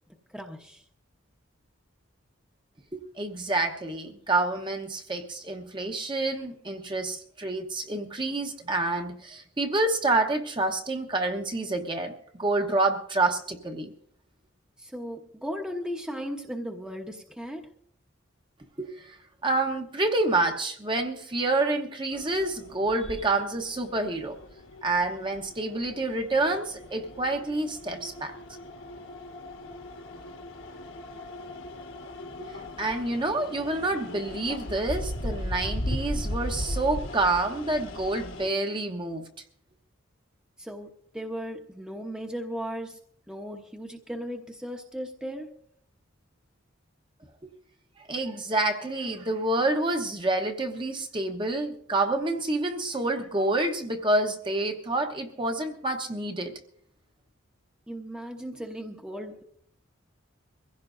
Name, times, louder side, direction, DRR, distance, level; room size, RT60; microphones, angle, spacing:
voice 1, 0.3-0.8 14.8-17.7 40.6-43.0 43.3-45.6 57.9-59.4, equal, 5° right, 2 dB, 0.9 m, -36 dB
voice 2, 2.9-13.9 18.8-19.2 19.4-24.4 24.8-28.3 32.4-32.5 32.8-39.3 47.4-47.5 48.1-56.5, right 2 dB, 25° right, 4 dB, 1.0 m, -28 dB
sound 1, 22.1-38.5, left 1 dB, 70° left, 1.6 m, -38 dB
23.5 x 15.5 x 2.6 m, 0.66 s
head